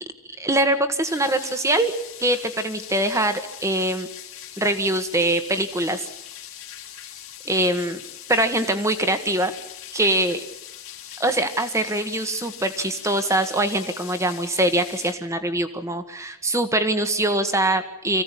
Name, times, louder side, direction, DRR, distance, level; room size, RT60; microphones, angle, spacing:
voice 1, 0.4-1.9 2.2-4.1 4.6-6.0 7.4-8.0 8.3-9.5 9.9-10.4 11.2-18.2, right 1 dB, 15° right, 9 dB, 1.6 m, -23 dB
sound 1, 1.0-15.1, left 11 dB, 70° left, 2.8 m, -41 dB
25.0 x 16.0 x 8.5 m, 0.89 s
head